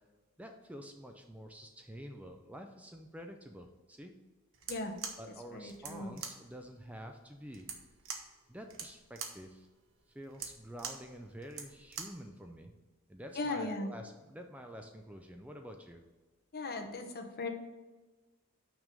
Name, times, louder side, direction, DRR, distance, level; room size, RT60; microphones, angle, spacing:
voice 1, 0.4-4.1 5.2-7.7 8.5-9.7 10.1-12.7 13.1-16.0, equal, 5° right, 4 dB, 0.5 m, -48 dB
sound 1, 4.5-12.3, right 6 dB, 60° right, 1.0 m, -45 dB
voice 2, 5.5-6.2 13.4-13.9 16.5-17.5, left 2 dB, 45° left, 5 dB, 1.0 m, -37 dB
6.0 x 5.3 x 6.6 m, 1.2 s
head